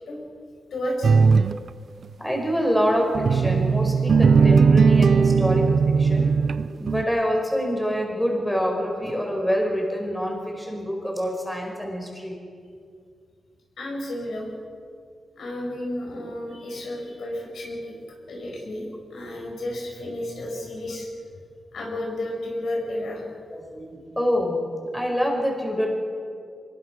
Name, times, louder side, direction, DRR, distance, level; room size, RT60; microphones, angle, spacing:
voice 1, 0.7-1.1 13.8-14.5 15.3-18.0 18.3-21.1 21.7-23.3, left 1 dB, 80° left, -1 dB, 7.2 m, -32 dB
sound 1, 1.0-1.6 3.1-7.0, right 5 dB, 60° right, 0.6 m, -18 dB
voice 2, 2.2-6.3 6.8-12.4 23.5-24.6 24.9-25.9, equal, 5° left, 0 dB, 5.1 m, -26 dB
24.0 x 21.5 x 6.2 m, 2.2 s
wide cardioid pair, 105°, 0 cm